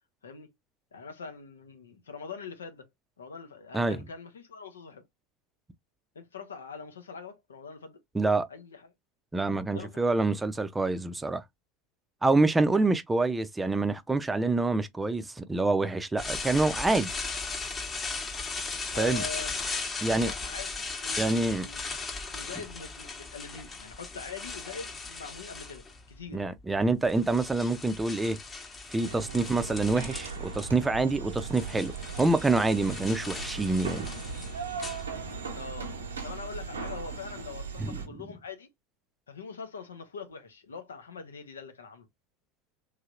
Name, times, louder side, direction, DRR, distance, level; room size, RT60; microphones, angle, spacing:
voice 1, 0.9-2.9 3.2-5.0 6.1-8.0 8.5-8.9 9.7-10.1 18.9-19.7 20.1-22.0 22.3-26.4 29.3-29.5 35.5-35.9 36.2-38.7 39.3-42.1, left 5 dB, 80° left, 0.7 m, -43 dB
voice 2, 8.1-8.5 9.3-11.4 12.2-17.2 19.0-19.2 20.0-20.3 21.2-21.7 26.3-28.4 28.9-34.1 37.8-38.0, right 3 dB, 10° right, 0.5 m, -26 dB
sound 1, 16.2-26.1 26.9-30.7 30.9-35.5, left 4 dB, 25° left, 1.0 m, -37 dB
sound 2, 29.0-38.1, right 5 dB, 80° right, 0.7 m, -38 dB
3.1 x 2.8 x 2.4 m
figure-of-eight pair, 80°, 0 cm